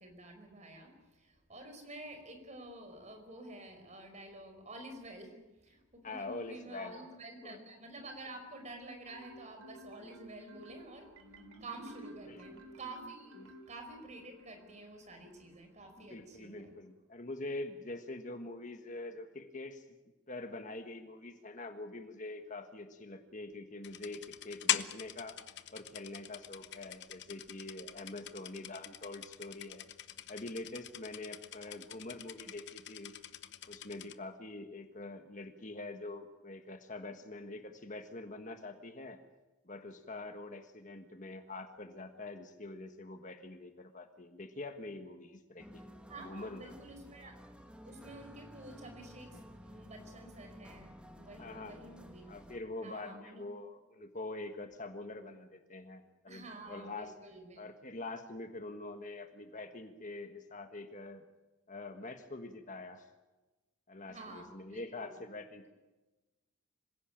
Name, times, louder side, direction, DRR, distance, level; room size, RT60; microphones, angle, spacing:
voice 1, 0.0-11.1 11.6-16.7 46.1-47.4 47.8-52.3 52.8-53.4 56.3-57.6 64.1-65.1, right 2 dB, 30° right, 5 dB, 5.0 m, -50 dB
voice 2, 6.0-7.1 7.4-7.6 12.2-12.4 13.4-13.5 16.0-19.8 20.3-29.9 30.3-33.1 33.7-39.2 39.6-45.8 46.2-46.7 51.4-51.8 52.3-57.1 57.6-61.2 61.7-63.1 63.9-65.7, left 2 dB, 35° left, 7 dB, 1.5 m, -45 dB
Marimba xylophone, 9.1-14.2, right 1 dB, 85° right, 3.2 m, -52 dB
sound 1, 23.8-34.1, left 11 dB, 55° left, 0.9 m, -42 dB
sound 2, 45.6-52.6, equal, 5° right, 1.8 m, -53 dB
26.0 x 16.5 x 8.9 m, 1.1 s
head